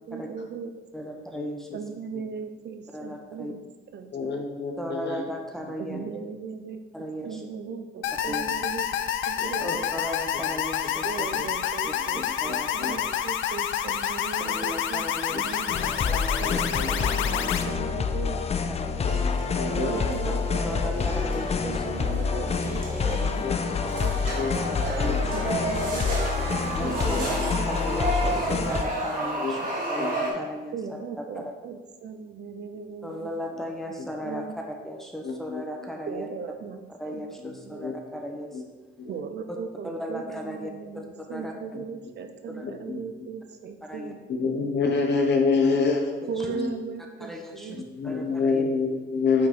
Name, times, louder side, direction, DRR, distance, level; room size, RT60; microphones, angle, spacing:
voice 1, 0.1-0.7 1.7-3.6 3.9-4.3 5.8-6.8 7.2-8.9 9.3-9.8 11.0-18.4 19.7-24.5 25.3-28.0 28.3-28.7 29.6-29.7 30.7-33.3 33.9-34.6 36.1-37.9 39.1-44.2 46.3-47.9, right 5 dB, 60° right, 7 dB, 0.8 m, -38 dB
voice 2, 0.9-1.7 2.9-3.5 4.8-6.0 6.9-7.4 8.3-8.4 9.6-11.3 12.4-12.9 14.4-15.6 16.1-16.6 16.9-17.0 18.2-18.3 18.7-19.2 20.6-21.8 23.2-23.6 24.7-25.4 26.7-29.6 29.9-30.7 31.3-31.5 33.0-34.5 34.8-36.3 37.0-38.6 39.5-39.6 39.8-41.0 41.3-41.5 42.5-42.6 43.8-44.1 46.2-46.5 47.2-47.7 48.0-48.6, equal, ahead, 1 dB, 1.0 m, -36 dB
voice 3, 4.1-5.3 5.9-6.0 9.4-9.7 11.3-11.4 12.1-12.9 16.5-16.9 19.0-20.2 23.4-23.6 24.3-25.2 26.8-27.2 29.4-29.6 30.0-30.3 34.0-34.1 35.2-35.6 37.8-37.9 38.5-38.6 39.0-39.2 41.7-41.8 42.6-43.0 44.3-46.7 47.7-49.5, left 4 dB, 60° left, 2 dB, 1.2 m, -28 dB
sound 1, 8.0-17.6, left 9 dB, 80° left, 0.5 m, -28 dB
sound 2, 15.7-28.8, left 5 dB, 30° left, 0.5 m, -27 dB
sound 3, 19.0-30.3, right 2 dB, 45° right, 2.2 m, -32 dB
8.6 x 3.9 x 4.4 m, 1.2 s
cardioid pair, 90°, 20 cm